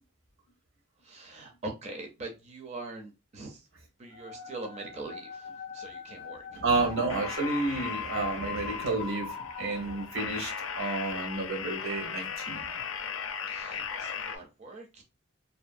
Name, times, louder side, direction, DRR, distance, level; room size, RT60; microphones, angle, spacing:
voice 1, 1.0-3.7 4.0-6.8 13.5-15.0, right 2 dB, 35° right, 0.4 m, -43 dB
sound 1, 4.1-10.9, left 6 dB, 30° left, 0.5 m, -41 dB
voice 2, 6.5-12.6, right 3 dB, 85° right, 1.0 m, -31 dB
sound 2, 7.1-14.4, left 6 dB, 85° left, 0.5 m, -37 dB
2.6 x 2.5 x 2.4 m
head